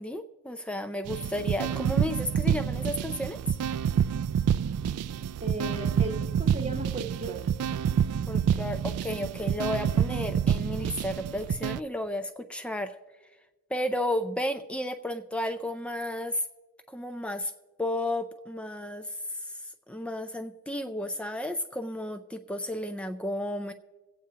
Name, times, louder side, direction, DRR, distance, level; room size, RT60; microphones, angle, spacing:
voice 1, 0.0-3.4 8.3-13.0 13.7-16.4 16.9-17.5 17.8-19.4 19.9-23.7, left 1 dB, 5° left, 9 dB, 0.3 m, -33 dB
sound 1, 1.1-11.8, right 8 dB, 80° right, 0.3 m, -28 dB
voice 2, 5.4-7.5, right 2 dB, 25° right, 3 dB, 0.9 m, -36 dB
25.0 x 8.7 x 2.8 m, 1.3 s
head